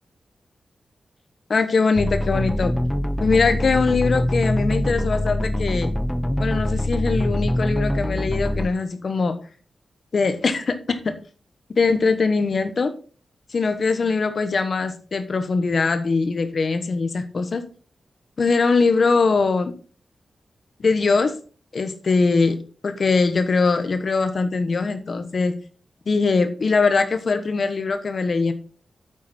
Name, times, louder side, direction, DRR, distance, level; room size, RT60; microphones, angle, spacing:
voice 1, 1.5-2.7 3.2-5.9 6.4-9.4 10.1-11.2 11.8-12.9 13.5-17.7 18.4-19.7 20.8-21.3 21.7-22.6 22.8-25.5 26.1-28.5, left 4 dB, 45° left, 9 dB, 1.1 m, -21 dB
sound 1, 2.0-8.7, left 1 dB, 5° left, 0.5 m, -24 dB
9.2 x 7.3 x 4.3 m, 0.40 s
wide cardioid pair, 170°, 0 cm